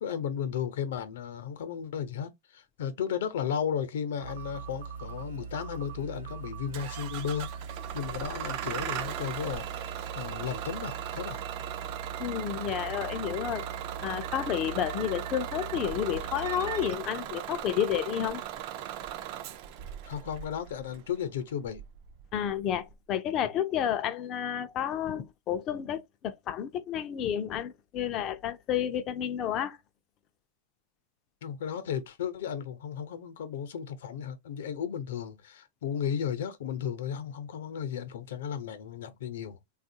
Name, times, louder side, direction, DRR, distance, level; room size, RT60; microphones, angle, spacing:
voice 1, 0.0-7.5 7.9-9.6 10.1-11.4 20.0-21.8 31.4-39.6, left 8 dB, 70° left, 0.7 m, -34 dB
sound 1, 4.2-16.9, right 6 dB, 80° right, 0.6 m, -41 dB
Bus / Engine starting, 6.7-22.9, right 11 dB, 35° right, 0.4 m, -39 dB
voice 2, 12.2-13.6 14.0-18.5 22.3-29.8, left 9 dB, 25° left, 0.4 m, -31 dB
3.6 x 2.4 x 2.7 m
supercardioid pair, 170°, 0 cm